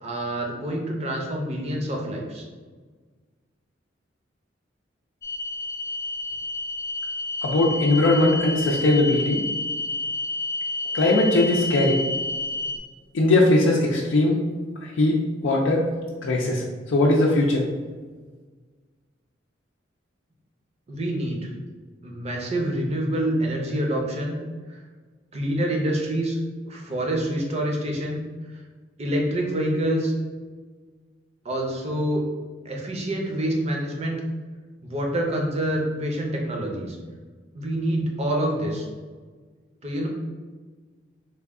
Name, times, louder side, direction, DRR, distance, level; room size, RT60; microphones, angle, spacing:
voice 1, 0.0-2.4 20.9-21.5 22.0-24.3 24.7-24.8 25.3-26.4 26.7-28.2 29.0-30.1 31.4-32.2 32.6-34.2 34.8-37.0 37.5-38.9 39.8-40.1, right 1 dB, 35° right, 0 dB, 0.6 m, -26 dB
sound 1, 5.2-12.8, left 2 dB, 15° left, 0.4 m, -30 dB
voice 2, 7.4-9.4 10.9-12.0 13.1-14.4 14.8-15.2 15.4-15.8 16.2-16.6 16.9-17.6, left 2 dB, 85° left, -2 dB, 0.4 m, -20 dB
3.3 x 2.3 x 3.5 m, 1.4 s
head